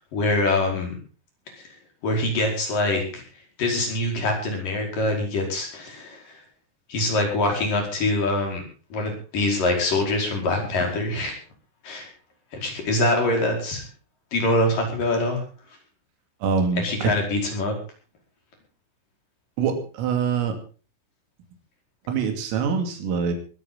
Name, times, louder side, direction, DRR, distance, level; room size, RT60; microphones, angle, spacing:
voice 1, 0.1-0.9 1.6-1.7 2.0-3.2 3.6-6.4 6.9-8.6 8.9-11.4 11.8-12.1 12.5-13.9 14.3-15.4 16.8-17.8, left 2 dB, 45° left, 2 dB, 6.2 m, -24 dB
voice 2, 16.4-17.1 19.6-20.5 22.1-23.3, right 6 dB, 85° right, 5 dB, 5.3 m, -24 dB
21.5 x 13.5 x 3.9 m, 0.36 s
omnidirectional pair, 5.8 m